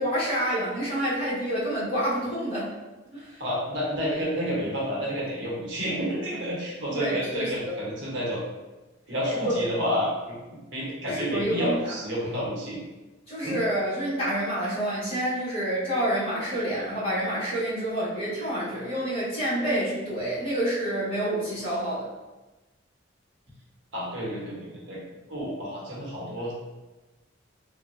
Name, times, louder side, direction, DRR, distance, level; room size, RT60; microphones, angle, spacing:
voice 1, 0.0-2.7 3.1-3.4 6.9-7.8 9.2-9.6 11.1-11.9 13.3-22.1, right 1 dB, 30° left, -9 dB, 0.9 m, -28 dB
voice 2, 3.4-8.4 9.1-12.8 13.4-13.6 23.9-25.0 25.3-26.5, equal, 65° right, -5 dB, 0.8 m, -30 dB
3.3 x 2.0 x 2.5 m, 1.1 s
head